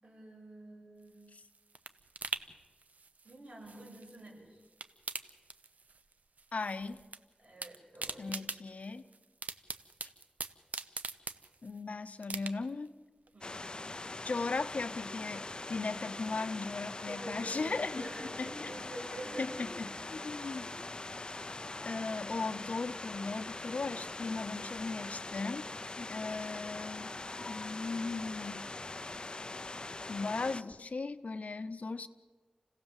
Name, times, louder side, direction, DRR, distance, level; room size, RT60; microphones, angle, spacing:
voice 1, 0.0-1.3 3.2-4.6 7.4-8.4 13.3-13.9 17.1-19.7 20.6-20.7, right 1 dB, 55° right, -2 dB, 7.7 m, -47 dB
sound 1, 1.0-4.3 4.6-6.1 6.4-7.2 7.4-11.8 12.2-12.9 13.3-13.4, right 4 dB, 80° right, 0.9 m, -43 dB
voice 2, 6.5-7.0 8.2-9.0 10.0-10.1 11.6-13.0 14.2-18.1 18.4-18.7 19.4-20.7 21.8-25.7 26.0-27.1 27.4-28.7 30.1-32.1, left 3 dB, 65° left, 12 dB, 0.9 m, -37 dB
sound 2, 13.4-30.6, left 2 dB, 35° left, 0.6 m, -42 dB
28.5 x 17.0 x 7.5 m, 1.4 s
wide cardioid pair, 85°, 3 cm